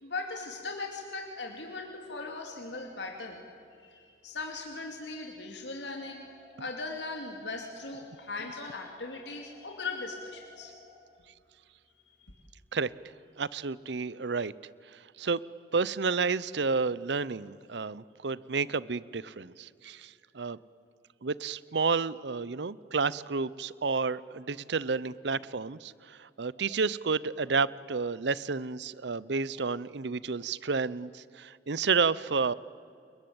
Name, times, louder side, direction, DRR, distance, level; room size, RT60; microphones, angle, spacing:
voice 1, 0.0-3.4 3.8-6.3 6.6-10.7 12.2-12.3, left 3 dB, 75° left, 2 dB, 2.8 m, -39 dB
sound 1, 6.0-11.0, left 2 dB, 15° right, 6.0 m, -57 dB
voice 2, 13.4-14.5 14.9-15.4 15.7-20.6 21.2-32.5, right 4 dB, 70° right, 19 dB, 0.7 m, -31 dB
29.0 x 22.0 x 8.8 m, 2.5 s
head